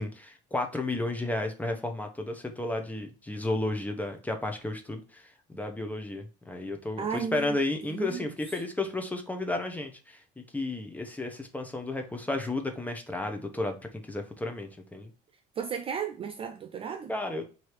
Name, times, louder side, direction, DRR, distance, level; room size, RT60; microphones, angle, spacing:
voice 1, 0.0-10.2 10.5-13.8 14.0-15.1 17.1-17.5, left 2 dB, 10° left, 0.8 m, -33 dB
voice 2, 7.0-7.6 7.9-8.2 15.6-17.1, right 7 dB, 30° right, 0.3 m, -34 dB
3.3 x 2.7 x 4.5 m
cardioid pair, 130°, 19 cm